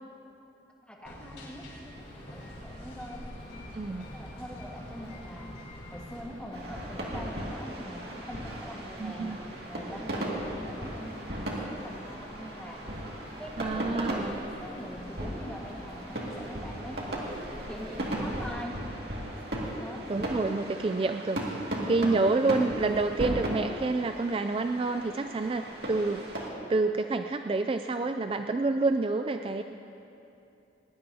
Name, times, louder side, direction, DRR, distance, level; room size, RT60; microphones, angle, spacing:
voice 1, 0.8-2.0 2.3-3.7 4.0-5.5 5.9-9.4 9.7-13.0 13.4-19.0 19.3-19.4 19.8-20.1, equal, 5° left, -2 dB, 1.6 m, -43 dB
sound 1, 1.1-6.2, left 1 dB, 70° left, 3.9 m, -47 dB
sound 2, 1.9-18.5, equal, 35° left, 3.6 m, -47 dB
voice 2, 3.7-4.1 9.0-9.4 13.6-14.4 20.1-21.4 21.8-26.3 26.7-29.6, right 3 dB, 30° right, 7 dB, 0.3 m, -28 dB
sound 3, 6.5-26.5, right 1 dB, 60° right, 2.2 m, -36 dB
20.0 x 19.0 x 2.8 m, 2.9 s
head